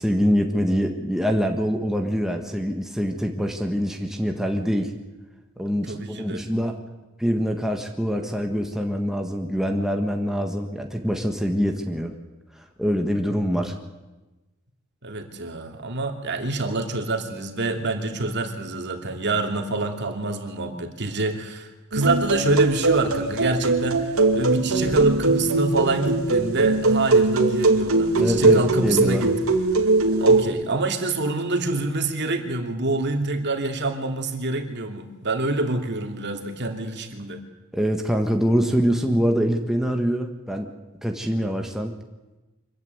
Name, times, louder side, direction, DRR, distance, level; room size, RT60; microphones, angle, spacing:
voice 1, 0.0-4.9 5.6-6.8 7.2-12.1 12.6-13.7 28.2-29.2 37.7-40.7 41.0-41.9, equal, ahead, 3 dB, 1.6 m, -24 dB
voice 2, 5.8-6.5 15.0-29.3 30.2-37.4, right 2 dB, 55° right, 4 dB, 2.8 m, -26 dB
sound 1, 21.9-30.4, right 3 dB, 90° right, 2.5 m, -20 dB
25.0 x 14.5 x 9.6 m, 1.1 s
head